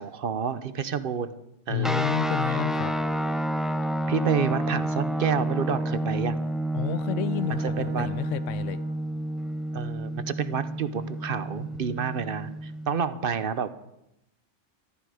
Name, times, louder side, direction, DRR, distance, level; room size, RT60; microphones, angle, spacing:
voice 1, 0.0-1.3 1.7-2.1 4.1-6.4 7.5-8.1 9.7-13.7, right 7 dB, 50° right, 13 dB, 0.9 m, -29 dB
voice 2, 1.7-2.9 6.7-8.8, left 11 dB, 90° left, 15 dB, 1.0 m, -30 dB
sound 1, 1.8-13.0, right 1 dB, ahead, 0.3 m, -29 dB
Bowed string instrument, 4.3-9.1, right 4 dB, 75° right, 1.8 m, -46 dB
14.0 x 13.0 x 4.9 m, 0.86 s
omnidirectional pair, 1.2 m